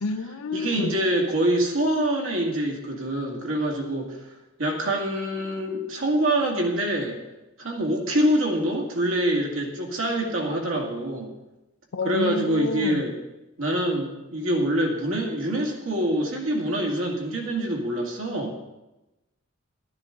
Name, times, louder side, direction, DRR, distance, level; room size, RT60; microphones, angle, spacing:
voice 1, 0.0-1.0 11.9-13.0, left 3 dB, 85° left, 0.6 m, -29 dB
voice 2, 0.5-4.2 4.6-7.2 7.6-11.3 12.0-13.1 13.6-18.6, right 1 dB, 70° right, 2.3 m, -25 dB
12.5 x 12.0 x 3.9 m
head